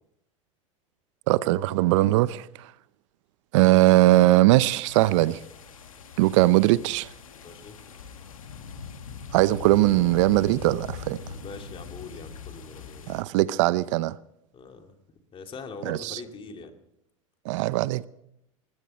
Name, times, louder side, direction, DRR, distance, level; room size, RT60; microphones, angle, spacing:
voice 1, 1.3-2.7 3.5-5.4 6.2-7.1 9.3-11.2 13.1-14.2 15.9-16.2 17.5-18.1, right 17 dB, 65° right, 0.6 m, -20 dB
sound 1, 4.9-13.2, left 5 dB, 85° left, 1.7 m, -41 dB
voice 2, 7.4-7.8 11.3-13.1 14.5-14.9 15.3-16.7, left 4 dB, 30° left, 2.5 m, -42 dB
20.0 x 16.0 x 4.3 m
hypercardioid pair, 90°, 17 cm